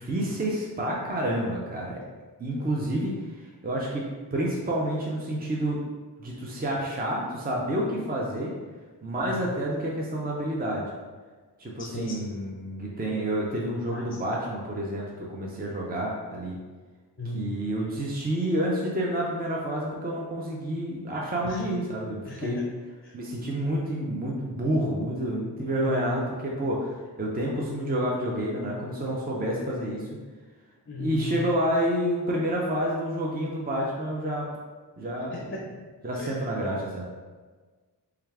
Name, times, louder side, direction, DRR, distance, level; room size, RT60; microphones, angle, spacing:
voice 1, 0.0-2.0 2.4-4.0 4.3-5.8 6.2-8.5 9.0-10.9 11.6-16.6 17.2-22.6 23.1-30.1 31.0-34.5 35.0-35.6 36.0-37.0, right 1 dB, 20° right, -3 dB, 0.6 m, -29 dB
voice 2, 11.8-12.2 13.9-14.0 17.2-17.5 21.4-21.6 22.3-22.5 25.8-26.1 30.9-31.3 35.3-35.6 36.2-36.3, left 3 dB, 30° left, -1 dB, 0.5 m, -35 dB
4.4 x 2.4 x 3.4 m, 1.4 s
wide cardioid pair, 90°, 42 cm